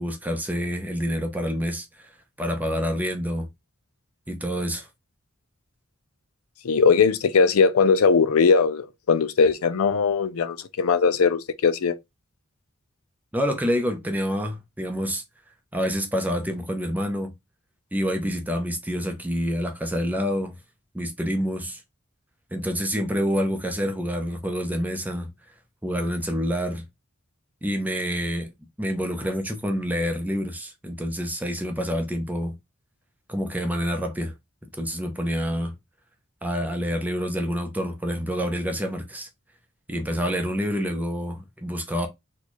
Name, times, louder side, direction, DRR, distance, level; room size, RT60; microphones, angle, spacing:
voice 1, 0.0-2.1 2.4-3.5 4.3-4.9 13.3-15.2 15.7-17.3 17.9-20.6 20.9-21.8 22.5-25.3 25.8-26.8 27.6-28.5 28.8-32.6 33.3-34.3 34.8-35.7 36.4-39.3 39.9-42.1, equal, 10° right, 0.6 m, -27 dB
voice 2, 6.6-11.9, left 5 dB, 90° left, 0.5 m, -20 dB
3.1 x 2.3 x 4.2 m
head